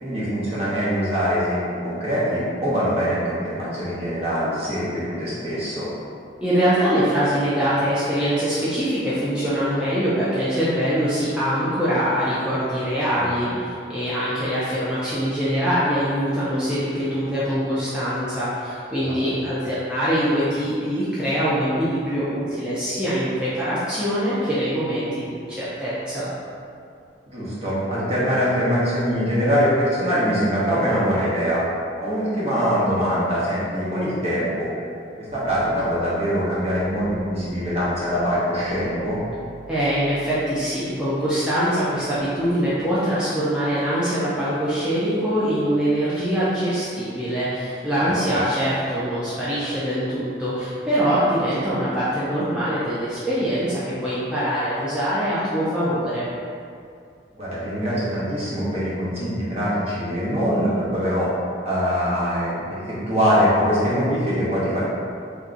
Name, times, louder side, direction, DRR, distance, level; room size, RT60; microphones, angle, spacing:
voice 1, 0.0-5.9 13.1-13.5 19.0-19.4 27.3-31.6 32.0-34.7 35.2-39.2 48.0-48.4 57.4-61.3 61.6-64.8, equal, 35° right, -9 dB, 1.1 m, -23 dB
voice 2, 6.4-26.3 39.7-56.3, equal, 5° right, -12 dB, 0.6 m, -23 dB
sound 1, 35.3-42.2, right 2 dB, 65° right, 1.1 m, -49 dB
3.5 x 2.9 x 3.8 m, 2.4 s
head